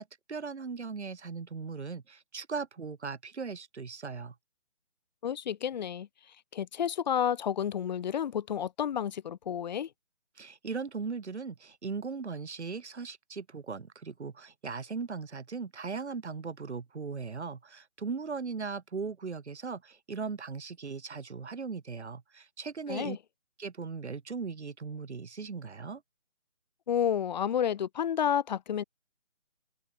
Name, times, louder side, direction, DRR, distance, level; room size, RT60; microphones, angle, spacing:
voice 1, 0.0-4.3 10.4-23.2 23.6-26.0, right 5 dB, 60° right, 7.2 m, -38 dB
voice 2, 5.2-6.1 6.5-9.9 22.9-23.2 26.9-28.8, left 9 dB, 35° left, 3.2 m, -30 dB
figure-of-eight pair, 155°, 38 cm